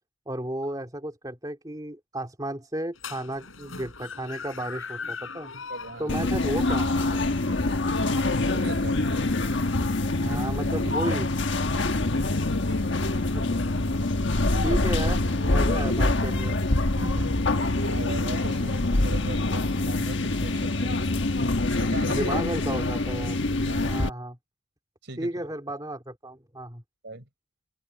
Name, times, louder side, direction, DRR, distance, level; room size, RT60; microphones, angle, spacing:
voice 1, 0.3-5.5 6.0-7.2 10.2-11.3 13.3-13.4 14.6-16.6 19.4-19.6 22.0-23.4 23.9-24.4 25.2-26.8, right 1 dB, 20° right, 3.0 m, -33 dB
sound 1, 2.9-17.0, left 5 dB, 75° left, 5.3 m, -44 dB
voice 2, 5.5-6.1 8.4-9.0 10.2-11.2 17.0-17.5 17.8-21.0 21.8-22.4 23.6-24.0 25.0-25.5 27.0-27.3, right 2 dB, 60° right, 4.4 m, -39 dB
sound 2, 6.1-24.1, left 2 dB, 60° left, 1.4 m, -25 dB
open air
head